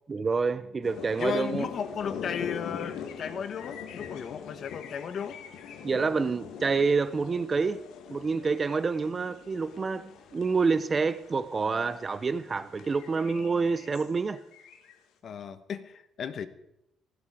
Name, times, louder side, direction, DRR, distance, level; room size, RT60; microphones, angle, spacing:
voice 1, 0.1-1.7 5.8-7.8 8.1-14.4, right 4 dB, 25° right, 0.6 m, -27 dB
sound 1, 0.8-11.3 11.8-12.0 12.4-15.0, left 7 dB, 80° left, 2.2 m, -43 dB
sound 2, 0.9-13.4, left 6 dB, 60° left, 2.7 m, -56 dB
voice 2, 1.2-5.4 15.2-16.5, left 7 dB, 45° left, 1.2 m, -35 dB
17.5 x 16.5 x 4.9 m
cardioid pair, 145°, 0 cm